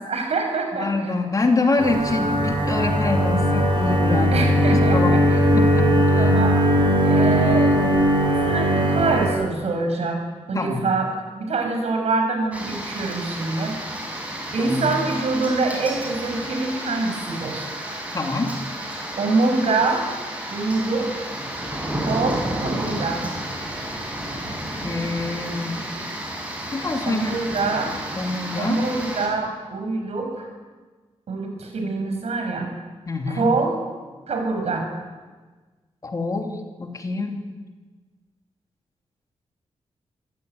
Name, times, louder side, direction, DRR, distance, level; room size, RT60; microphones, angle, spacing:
voice 1, 0.0-1.2 4.3-5.4 6.2-6.7 7.0-7.8 8.4-13.8 14.5-17.7 19.2-20.1 20.5-21.3 22.1-23.2 27.1-28.0 28.6-30.5 31.3-32.7 33.4-33.8 34.3-34.9, right 3 dB, 70° right, 3 dB, 6.9 m, -25 dB
voice 2, 0.8-6.3 10.5-10.8 14.6-14.9 18.1-18.5 24.8-25.8 26.7-27.3 28.1-28.8 33.1-33.5 36.0-37.4, left 3 dB, 30° left, 3 dB, 2.9 m, -26 dB
sound 1, 1.8-9.3, equal, 45° right, 7.4 m, -19 dB
sound 2, 12.5-29.3, right 1 dB, 10° right, 6.2 m, -31 dB
26.0 x 16.0 x 9.6 m, 1.4 s
wide cardioid pair, 155°, 11 cm